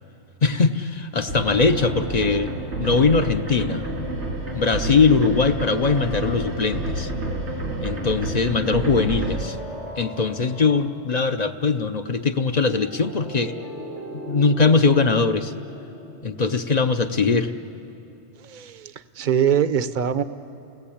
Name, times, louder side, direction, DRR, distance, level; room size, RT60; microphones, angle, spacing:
voice 1, 0.4-3.8 4.5-7.1 7.8-9.6 10.0-13.5 14.1-15.5 16.2-17.5, left 4 dB, 45° left, 8 dB, 0.7 m, -21 dB
sound 1, 1.3-3.7 5.4-7.3 8.6-11.4 12.7-17.2, equal, 90° left, 2.6 m, -41 dB
sound 2, 1.3-9.4, right 2 dB, 90° right, 3.0 m, -29 dB
voice 2, 18.4-20.2, right 8 dB, 50° right, 12 dB, 0.8 m, -23 dB
29.5 x 19.0 x 8.6 m, 2.9 s
omnidirectional pair, 1.1 m